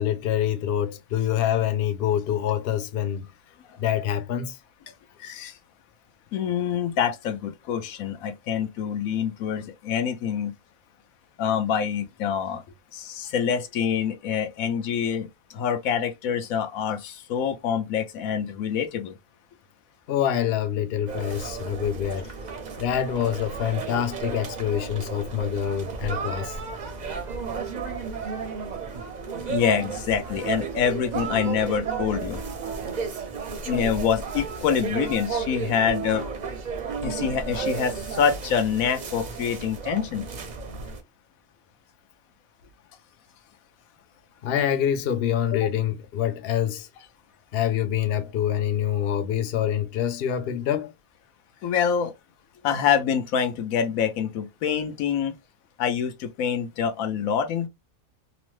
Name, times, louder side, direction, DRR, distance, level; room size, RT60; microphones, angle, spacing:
voice 1, 0.0-3.2 3.8-4.6 20.1-22.3 22.8-26.6 44.4-46.9 47.5-50.9, left 10 dB, 65° left, 0.6 m, -26 dB
voice 2, 5.2-5.6 6.3-10.5 11.4-12.6 12.9-19.2 22.6-22.8 27.8-27.9 28.4-28.7 29.2-32.4 33.7-36.2 37.0-40.3 51.6-52.1 52.6-55.3 55.8-57.7, left 7 dB, 80° left, 1.0 m, -26 dB
sound 1, 21.1-41.0, right 5 dB, 50° right, 0.5 m, -33 dB
2.9 x 2.0 x 3.0 m
omnidirectional pair, 1.5 m